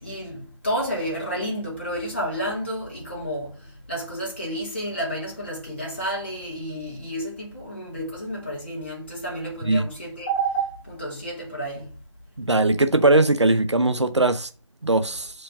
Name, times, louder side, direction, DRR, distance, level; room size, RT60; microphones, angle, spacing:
voice 1, 0.0-3.5 3.9-11.9, right 1 dB, 20° left, 2.3 m, -30 dB
voice 2, 12.4-14.5 14.8-15.3, right 2 dB, 60° right, 0.9 m, -20 dB
6.8 x 5.1 x 3.6 m
figure-of-eight pair, 170°, 17 cm